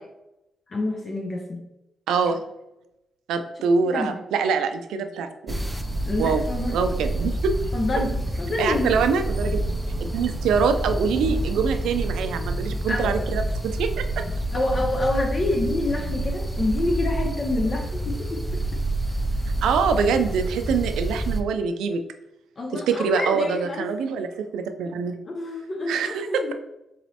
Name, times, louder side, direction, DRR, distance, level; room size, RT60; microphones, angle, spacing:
voice 1, 0.7-1.6 3.9-4.1 6.1-6.8 7.7-8.9 11.2-11.3 12.9-13.3 14.5-18.4 22.6-23.9 25.3-26.5, left 2 dB, 45° left, 1 dB, 0.6 m, -27 dB
voice 2, 2.1-2.4 3.3-5.5 6.2-6.4 6.7-7.5 8.6-9.6 10.0-14.2 19.6-22.0 22.7-24.3 24.5-25.2 25.9-26.5, right 5 dB, 85° right, 8 dB, 0.4 m, -24 dB
sound 1, 5.5-21.4, right 1 dB, 5° right, 0.4 m, -28 dB
4.0 x 3.0 x 2.8 m, 0.87 s
cardioid pair, 65°, 0 cm